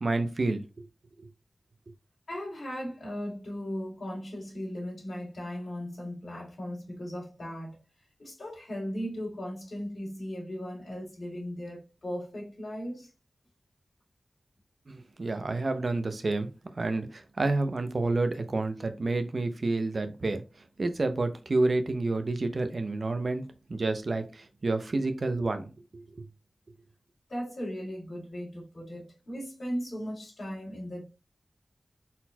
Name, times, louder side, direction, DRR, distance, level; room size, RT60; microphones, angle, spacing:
voice 1, 0.0-0.8 1.2-1.3 14.9-16.5 16.7-20.4 20.8-26.2, right 2 dB, 55° right, 0.7 m, -29 dB
voice 2, 2.3-7.8 8.2-13.1 27.3-31.0, equal, 60° left, 2.3 m, -37 dB
4.2 x 4.1 x 2.3 m
wide cardioid pair, 85°, 0 cm